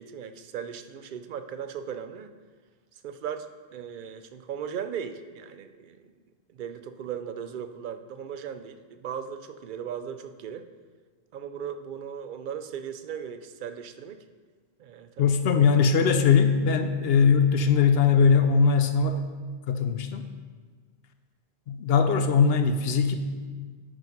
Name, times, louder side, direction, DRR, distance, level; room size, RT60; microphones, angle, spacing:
voice 1, 0.0-2.3 3.0-6.1 6.5-10.7 11.3-14.2 14.8-15.4, right 8 dB, 60° right, 9 dB, 0.6 m, -37 dB
voice 2, 15.2-19.3 19.7-20.2 21.7-23.2, left 6 dB, 75° left, 8 dB, 0.8 m, -21 dB
9.3 x 5.3 x 5.2 m, 1.5 s
omnidirectional pair, 1.1 m